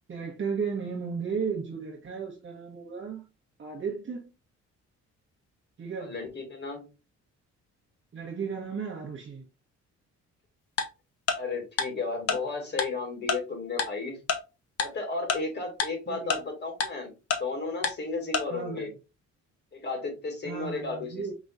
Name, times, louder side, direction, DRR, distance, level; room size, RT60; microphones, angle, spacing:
voice 1, 0.1-3.3 3.6-4.3 5.8-6.1 8.1-9.4 16.1-16.4 18.5-18.9 20.4-21.3, right 5 dB, 40° right, 1.1 m, -34 dB
voice 2, 6.0-6.9 11.4-14.2 14.8-17.1 17.4-18.9 19.7-21.2, left 3 dB, 35° left, 2.3 m, -34 dB
Tick-tock, 10.8-10.9 11.3-11.4 11.8-11.9 12.3-12.4 12.8-12.9 13.3-13.4 13.8-13.9 14.3-14.4 14.8-14.9 15.3-15.4 15.8-15.9 16.3-16.4 16.8-16.9 17.3-17.4 17.8-17.9 18.3-18.4, left 6 dB, 50° left, 0.9 m, -26 dB
5.3 x 3.1 x 2.4 m
cardioid pair, 90°, 30 cm